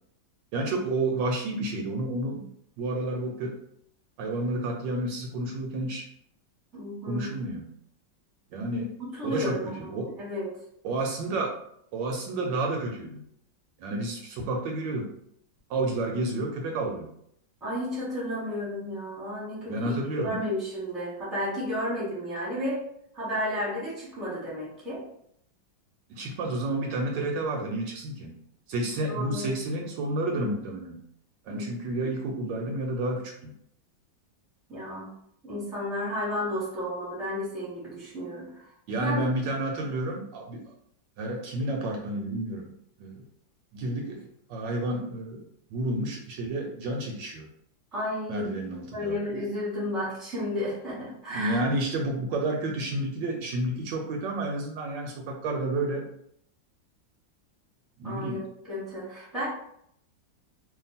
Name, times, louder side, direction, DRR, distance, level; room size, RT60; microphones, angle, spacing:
voice 1, 0.5-2.5 2.8-3.6 4.2-6.1 7.1-7.6 8.5-8.9 9.2-10.1 10.8-11.6 11.9-13.2 13.8-15.1 15.7-17.1 19.7-20.4 26.1-28.3 28.7-31.0 31.5-33.5 38.9-40.6 41.2-42.7 43.0-43.2 43.7-45.4 45.7-47.5 48.3-49.2 51.3-56.0 58.0-58.4, right 2 dB, 75° right, 2 dB, 1.2 m, -30 dB
voice 2, 6.7-7.3 9.1-10.5 17.6-19.9 20.2-22.9 23.1-25.0 29.1-29.5 31.5-31.7 34.7-35.1 35.4-38.7 39.0-39.2 47.9-48.5 48.9-51.6 58.0-59.5, left 1 dB, ahead, -6 dB, 1.0 m, -32 dB
2.8 x 2.5 x 4.0 m, 0.70 s
omnidirectional pair, 2.1 m